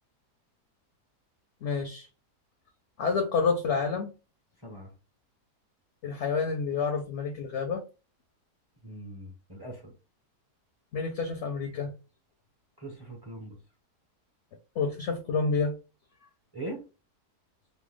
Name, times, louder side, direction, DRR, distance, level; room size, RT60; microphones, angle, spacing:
voice 1, 1.6-2.1 3.0-4.1 6.0-7.8 10.9-11.9 14.8-15.7, left 5 dB, 65° left, 0.7 m, -28 dB
voice 2, 8.8-9.9 12.8-13.6 16.5-16.9, right 1 dB, 25° right, 0.5 m, -41 dB
2.9 x 2.1 x 3.3 m
omnidirectional pair, 1.7 m